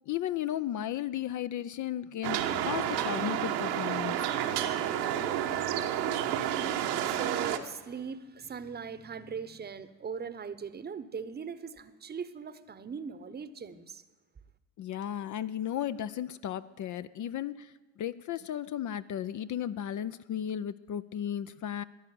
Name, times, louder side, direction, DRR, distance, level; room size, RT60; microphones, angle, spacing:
voice 1, 0.1-4.2 14.8-21.8, left 11 dB, 40° left, 14 dB, 0.5 m, -35 dB
sound 1, 2.2-7.6, right 10 dB, 85° right, 1.5 m, -30 dB
voice 2, 7.0-14.0, right 6 dB, 20° right, 13 dB, 0.9 m, -40 dB
14.0 x 10.5 x 9.3 m, 1.2 s
supercardioid pair, 90°, 48 cm